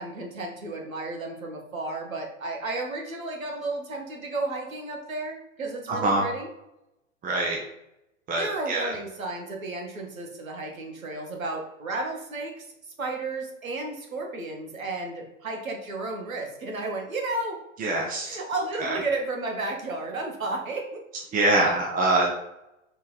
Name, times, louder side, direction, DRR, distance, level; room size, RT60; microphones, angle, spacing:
voice 1, 0.0-6.5 8.3-12.7 13.0-17.6 18.3-21.0 22.1-22.3, right 2 dB, 85° right, 2 dB, 1.9 m, -33 dB
voice 2, 7.2-7.6 8.3-8.9 17.8-18.3 18.8-19.0 21.3-22.3, right 2 dB, 20° right, -2 dB, 1.1 m, -24 dB
5.0 x 4.3 x 5.6 m, 0.86 s
hypercardioid pair, 110°, 40 cm